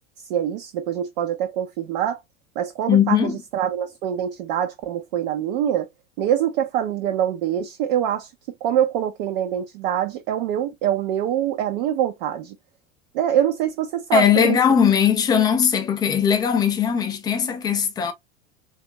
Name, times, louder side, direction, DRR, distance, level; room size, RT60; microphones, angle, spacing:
voice 1, 0.3-2.2 2.6-5.9 6.2-8.3 8.6-12.6 13.1-14.6, right 10 dB, 45° right, 0.5 m, -24 dB
voice 2, 2.9-3.4 14.1-18.1, left 8 dB, 10° left, 0.3 m, -19 dB
3.5 x 2.3 x 2.7 m
figure-of-eight pair, 80°, 39 cm